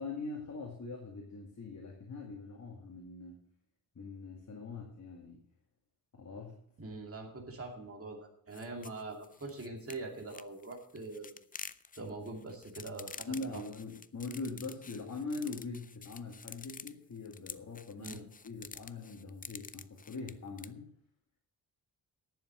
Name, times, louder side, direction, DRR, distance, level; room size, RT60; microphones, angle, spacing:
voice 1, 0.0-3.4 4.0-5.4 6.1-6.6 13.2-20.9, left 3 dB, 50° left, -1 dB, 2.1 m, -42 dB
voice 2, 6.8-11.3 12.0-13.7 18.0-18.3, right 2 dB, 40° right, 1 dB, 2.5 m, -43 dB
sound 1, 8.5-20.7, left 5 dB, 25° left, 0.3 m, -49 dB
10.5 x 7.1 x 7.5 m, 0.66 s
wide cardioid pair, 165°, 36 cm